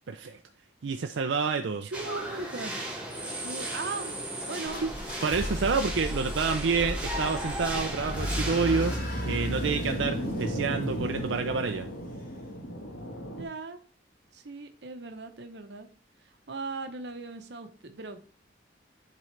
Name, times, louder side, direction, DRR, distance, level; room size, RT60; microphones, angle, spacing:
voice 1, 0.1-0.4 0.8-1.9 4.8-4.9 5.2-8.9 9.2-11.9, right 5 dB, 85° right, 6 dB, 0.5 m, -28 dB
voice 2, 1.8-2.8 3.2-4.8 10.0-10.3 13.4-13.8 14.3-15.9 16.2-18.2, right 3 dB, 65° right, 7 dB, 0.8 m, -39 dB
sound 1, 1.9-9.0, right 1 dB, 5° right, 1.4 m, -36 dB
sound 2, 4.6-11.5, equal, 55° left, 1.9 m, -36 dB
sound 3, 5.8-13.4, equal, 90° left, 1.4 m, -36 dB
10.5 x 3.8 x 3.2 m, 0.43 s
head